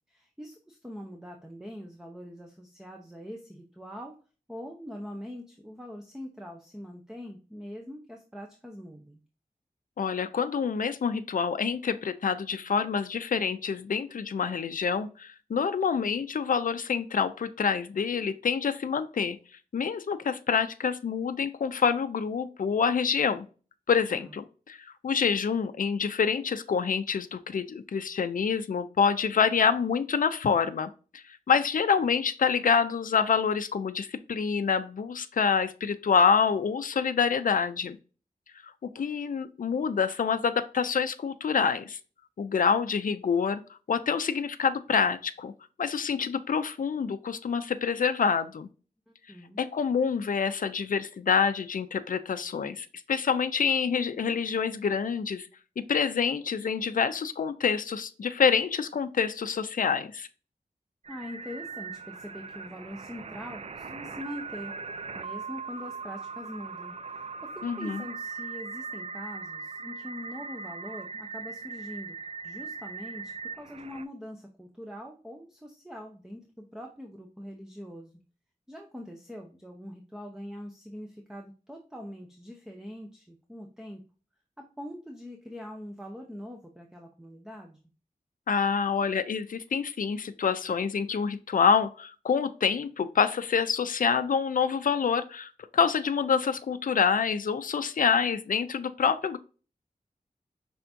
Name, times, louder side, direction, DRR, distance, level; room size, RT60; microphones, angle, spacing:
voice 1, 0.1-4.1 4.5-9.2 24.1-24.3 49.1-49.6 61.1-72.2 72.4-78.1 78.7-84.0 84.6-87.8, equal, 5° right, 2 dB, 0.7 m, -43 dB
voice 2, 10.0-19.4 19.7-23.5 23.9-38.0 39.0-42.0 42.4-43.6 43.9-45.5 45.8-48.7 49.6-55.5 55.8-60.3 67.6-68.0 88.5-99.4, left 6 dB, 65° left, 10 dB, 0.5 m, -27 dB
sound 1, 61.0-74.0, right 5 dB, 45° right, 0.4 m, -40 dB
5.7 x 3.4 x 2.6 m, 0.36 s
wide cardioid pair, 80°, 15 cm